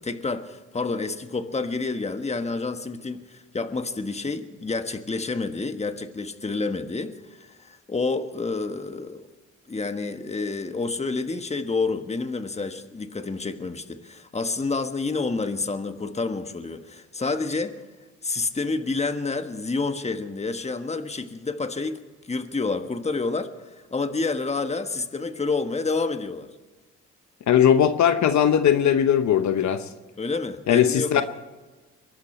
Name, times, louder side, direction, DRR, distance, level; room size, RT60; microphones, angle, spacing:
voice 1, 0.0-9.3 9.7-17.7 18.2-22.0 22.2-26.5 30.2-31.2, left 3 dB, 20° left, 8 dB, 1.4 m, -29 dB
voice 2, 27.5-29.9 30.7-31.2, left 9 dB, 65° left, 10 dB, 1.0 m, -19 dB
23.0 x 12.5 x 4.4 m, 1.3 s
cardioid pair, 85°, 31 cm